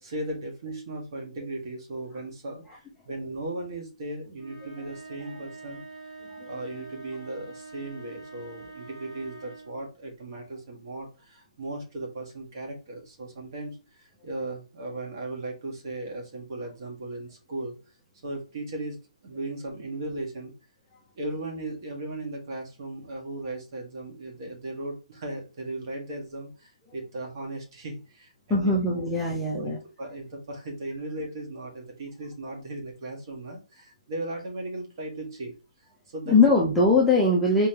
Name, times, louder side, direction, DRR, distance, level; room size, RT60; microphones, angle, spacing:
voice 1, 0.0-5.8 6.4-17.8 18.2-19.0 19.2-20.5 21.2-28.8 29.3-35.5 36.1-36.4, right 2 dB, 35° right, 0 dB, 1.7 m, -37 dB
sound 1, 4.3-9.8, right 3 dB, 70° right, 2.2 m, -45 dB
voice 2, 28.5-29.8 36.3-37.7, left 3 dB, 5° left, -5 dB, 0.6 m, -21 dB
4.3 x 3.8 x 2.8 m, 0.31 s
hypercardioid pair, 170°, 4 cm